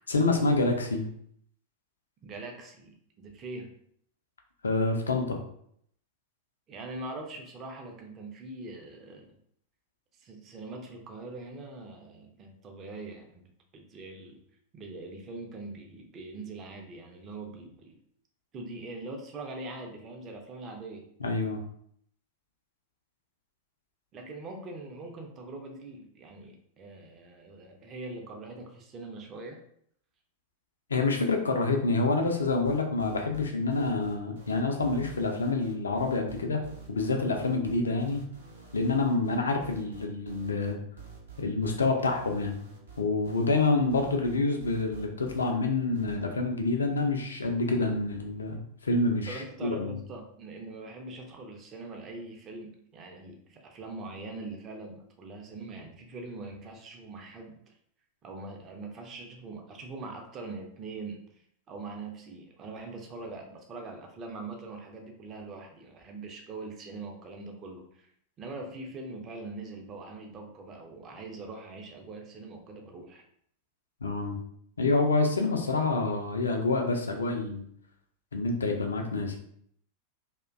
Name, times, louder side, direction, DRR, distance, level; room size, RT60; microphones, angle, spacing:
voice 1, 0.1-1.1 4.6-5.4 21.2-21.6 30.9-36.6 36.9-38.2 38.7-40.8 41.4-42.5 43.0-50.0 74.0-74.4 74.8-77.6 78.3-79.4, left 3 dB, 75° left, 3 dB, 0.4 m, -27 dB
voice 2, 2.2-3.7 6.7-9.3 10.1-13.5 13.7-14.4 14.7-18.0 18.5-21.1 24.1-29.6 49.3-57.6 58.2-61.2 61.7-68.1 68.4-73.2, right 3 dB, 30° right, 2 dB, 0.4 m, -42 dB
sound 1, 32.4-45.5 45.9-46.2, right 4 dB, 75° right, 0.7 m, -48 dB
2.4 x 2.1 x 2.4 m, 0.67 s
figure-of-eight pair, 90°, 0 cm